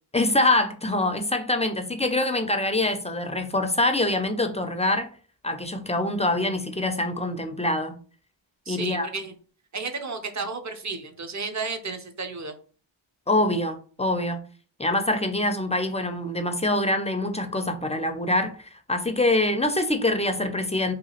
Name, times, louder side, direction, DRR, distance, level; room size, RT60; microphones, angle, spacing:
voice 1, 0.1-5.1 5.4-7.9 8.7-9.1 13.3-14.4 14.8-20.9, left 2 dB, 15° left, 0.3 m, -25 dB
voice 2, 8.7-9.3 9.7-12.5, right 4 dB, 35° right, 0.6 m, -32 dB
2.8 x 2.3 x 2.8 m
cardioid pair, 60°, 49 cm